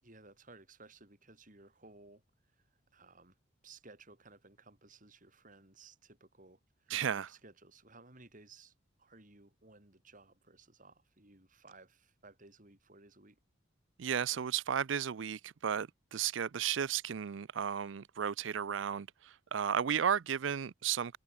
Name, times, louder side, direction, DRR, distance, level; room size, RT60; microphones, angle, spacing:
voice 1, 0.0-3.4 3.6-7.0 7.3-13.4, right 3 dB, 45° right, 5.2 m, -58 dB
voice 2, 6.9-7.3 14.0-21.2, right 8 dB, 75° right, 0.5 m, -34 dB
head